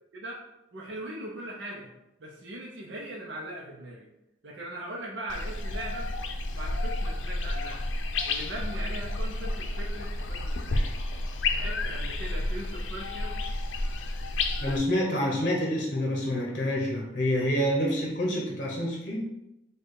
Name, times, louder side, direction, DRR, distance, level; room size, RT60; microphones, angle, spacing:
voice 1, 0.7-1.9 2.2-4.1 4.4-6.1 6.5-7.8 8.2-10.9 11.5-13.3, right 1 dB, 70° right, -3 dB, 0.7 m, -40 dB
sound 1, 5.3-14.8, left 2 dB, 80° left, 0.5 m, -31 dB
voice 2, 14.6-19.2, equal, 45° left, -1 dB, 0.9 m, -27 dB
4.5 x 2.4 x 4.7 m, 0.93 s
head